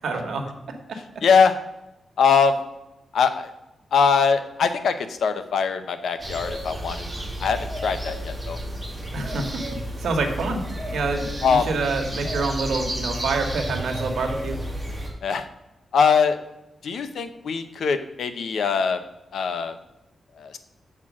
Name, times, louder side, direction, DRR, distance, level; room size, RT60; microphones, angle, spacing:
voice 1, 0.0-0.4 0.9-1.0 9.1-9.6 10.0-10.6 10.9-14.6, right 3 dB, 80° right, 4 dB, 1.4 m, -27 dB
voice 2, 1.2-1.5 2.2-2.6 3.1-3.5 3.9-7.0 7.4-8.6 11.4-11.7 14.2-14.3 15.2-15.5 15.9-16.4 16.8-19.0 19.3-19.7 20.4-20.6, left 6 dB, 75° left, 9 dB, 0.7 m, -22 dB
sound 1, 6.2-15.1, equal, 10° right, 1.5 m, -32 dB
7.3 x 4.4 x 6.1 m, 0.92 s
wide cardioid pair, 155°, 0 cm